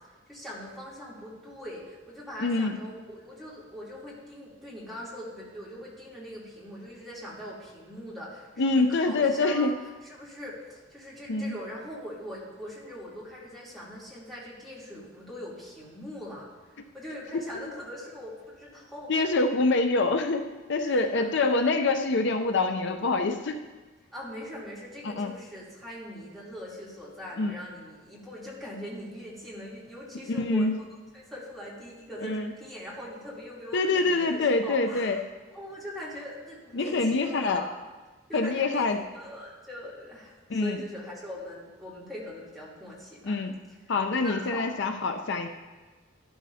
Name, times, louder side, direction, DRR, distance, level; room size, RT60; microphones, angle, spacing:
voice 1, 0.3-9.7 10.0-19.3 20.8-21.2 24.1-30.8 31.1-35.1 35.5-37.7 38.3-38.8 39.1-43.4 43.7-43.8 44.2-44.7, equal, ahead, -8 dB, 3.1 m, -41 dB
voice 2, 2.4-2.8 8.6-9.8 11.3-11.5 19.1-23.6 25.0-25.3 27.4-27.5 30.3-30.8 32.2-32.5 33.7-35.2 36.7-37.6 38.3-39.0 40.5-40.8 43.2-43.5 43.9-45.5, left 3 dB, 65° left, 6 dB, 0.6 m, -25 dB
12.5 x 12.5 x 2.8 m, 1.3 s
head